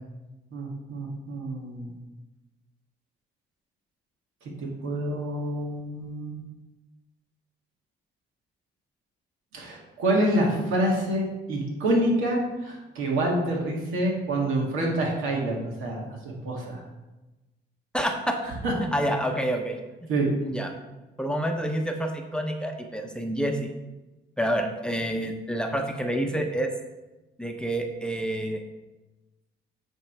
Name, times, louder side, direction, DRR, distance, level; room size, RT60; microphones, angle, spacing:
voice 1, 0.5-1.9 4.6-6.4 9.5-16.2 16.4-16.8 18.6-18.7 20.1-20.3, right 1 dB, 90° right, -2 dB, 2.1 m, -27 dB
voice 2, 17.9-18.4 18.8-19.8 20.4-20.7 21.2-23.7 24.4-26.7 27.4-28.6, right 1 dB, 5° left, 3 dB, 0.8 m, -28 dB
9.8 x 3.7 x 4.6 m, 1.1 s
cardioid pair, 90°, 20 cm